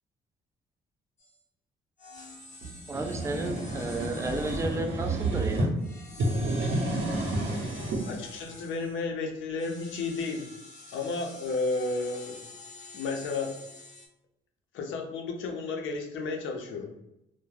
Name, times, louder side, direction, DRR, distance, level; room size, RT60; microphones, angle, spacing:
sound 1, 1.2-1.4 2.0-5.2 5.8-9.0 9.6-14.1, left 2 dB, 35° left, 0.7 m, -48 dB
sound 2, 2.6-5.7 6.1-8.0, right 2 dB, 65° right, 0.8 m, -30 dB
voice 1, 2.9-5.7, right 2 dB, 15° right, 4 dB, 0.3 m, -32 dB
voice 2, 8.0-10.5 10.9-12.4 12.9-13.6 14.7-16.9, left 3 dB, 75° left, 3 dB, 0.5 m, -32 dB
2.3 x 2.1 x 3.1 m, 0.87 s
cardioid pair, 90°, 20 cm